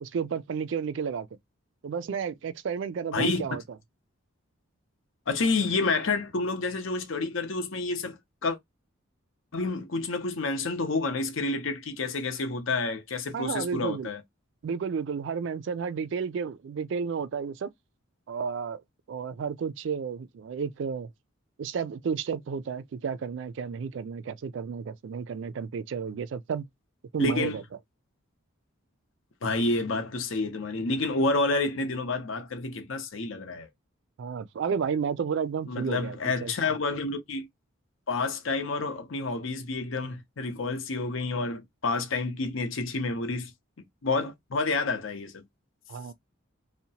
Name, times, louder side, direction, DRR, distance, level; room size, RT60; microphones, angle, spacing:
voice 1, 0.0-1.3 1.8-3.6 13.3-14.1 14.6-17.7 18.3-18.8 19.1-21.1 21.6-26.6 27.1-27.6 34.2-36.5 45.9-46.1, right 6 dB, 60° right, 0.3 m, -32 dB
voice 2, 3.1-3.5 5.3-8.2 8.4-8.6 9.5-14.2 27.2-27.6 29.4-33.7 35.7-37.5 38.1-43.5 44.0-45.4, left 3 dB, 70° left, 0.7 m, -29 dB
2.8 x 2.0 x 2.7 m
head